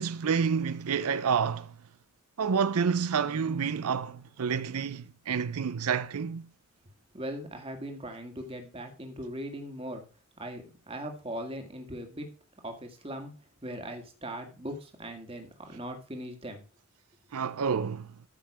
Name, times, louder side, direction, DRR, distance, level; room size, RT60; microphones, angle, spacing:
voice 1, 0.0-1.8 2.4-6.5 17.3-18.1, right 6 dB, 85° right, 0.5 m, -29 dB
voice 2, 7.1-10.0 10.4-12.3 12.6-13.3 13.6-16.6, right 1 dB, 25° right, 1.7 m, -39 dB
13.0 x 5.6 x 4.9 m
head